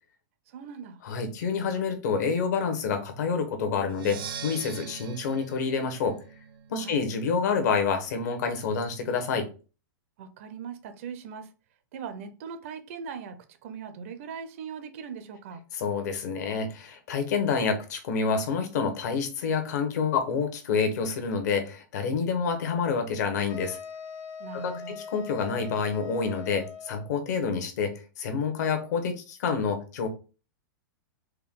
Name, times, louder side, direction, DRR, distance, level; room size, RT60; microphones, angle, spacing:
voice 1, 0.5-1.0 6.8-7.0 10.2-11.5 11.9-15.6 24.4-25.0, right 6 dB, 35° right, 9 dB, 0.5 m, -40 dB
voice 2, 1.0-6.2 6.7-9.5 15.8-23.8 24.5-30.1, left 5 dB, 50° left, 6 dB, 0.9 m, -28 dB
Percussion, 3.9-7.7, right 7 dB, 75° right, 0.8 m, -42 dB
sound 1, 23.5-27.1, left 6 dB, 25° left, 0.4 m, -41 dB
4.4 x 2.2 x 3.7 m, 0.34 s
supercardioid pair, 170°, 12 cm